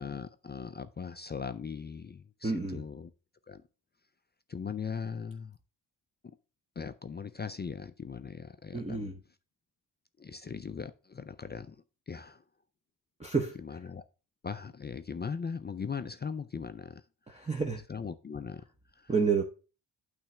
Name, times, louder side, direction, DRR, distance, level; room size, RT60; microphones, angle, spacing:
voice 1, 0.0-3.1 3.5-3.6 4.5-5.6 6.8-9.1 10.2-11.8 12.1-12.4 13.6-14.0 14.4-17.0 17.3-17.5 17.9-18.6 19.0-19.1, left 6 dB, 25° left, 0.4 m, -39 dB
voice 2, 2.4-2.8 8.7-9.2 13.2-13.6 17.3-17.8 19.1-19.4, right 5 dB, 15° right, 0.9 m, -29 dB
8.8 x 3.4 x 6.1 m
wide cardioid pair, 120°, 42 cm